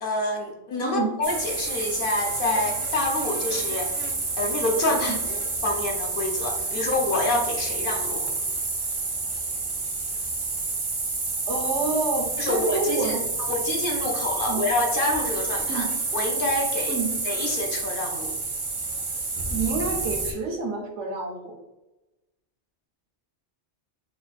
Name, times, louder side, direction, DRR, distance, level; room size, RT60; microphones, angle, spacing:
voice 1, 0.0-3.9 4.4-8.3 12.4-13.2 13.5-15.9 16.1-17.0 17.2-18.3, left 2 dB, 55° left, 1 dB, 0.9 m, -27 dB
sound 1, 1.2-20.3, right 3 dB, 35° right, 0.5 m, -29 dB
voice 2, 11.5-13.5 14.5-14.7 15.7-15.9 16.9-17.1 19.5-21.6, right 3 dB, 80° right, 2 dB, 1.2 m, -28 dB
4.4 x 2.4 x 4.1 m, 1.0 s
omnidirectional pair, 1.2 m